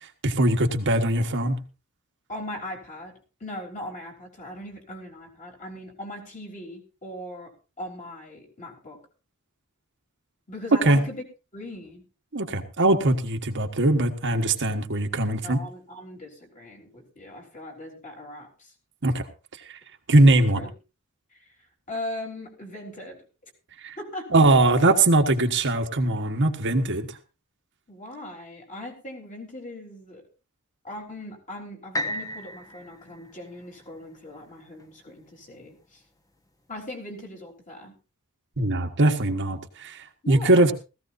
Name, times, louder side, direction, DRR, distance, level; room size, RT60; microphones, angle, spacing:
voice 1, 0.2-1.6 10.8-11.0 12.3-15.6 19.0-19.2 20.1-20.6 23.8-24.0 24.3-27.1 38.6-40.0 40.3-40.7, right 2 dB, 55° right, 4 dB, 1.4 m, -21 dB
voice 2, 2.3-3.1 3.4-7.5 7.8-9.0 10.5-11.2 11.5-12.0 15.4-18.7 20.6-20.7 21.3-21.4 21.9-23.2 24.0-24.4 27.9-30.2 30.8-36.0 36.7-37.9 40.2-40.7, left 1 dB, 35° left, 1 dB, 3.8 m, -39 dB
sound 1, 31.9-35.9 36.5-36.6, left 1 dB, 15° left, 1.2 m, -36 dB
17.5 x 15.0 x 2.7 m, 0.31 s
head